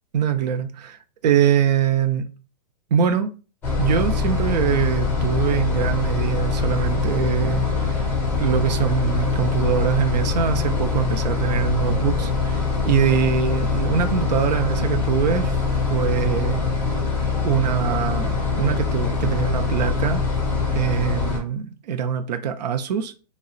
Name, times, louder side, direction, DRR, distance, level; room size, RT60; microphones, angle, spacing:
voice 1, 0.1-2.2 2.9-3.3 3.8-8.1 8.3-16.6 17.4-20.2 20.7-23.1, right 8 dB, 75° right, 0.5 m, -23 dB
sound 1, 3.6-21.4, left 4 dB, 10° left, 1.0 m, -23 dB
3.8 x 2.0 x 2.3 m
hypercardioid pair, 165°, 21 cm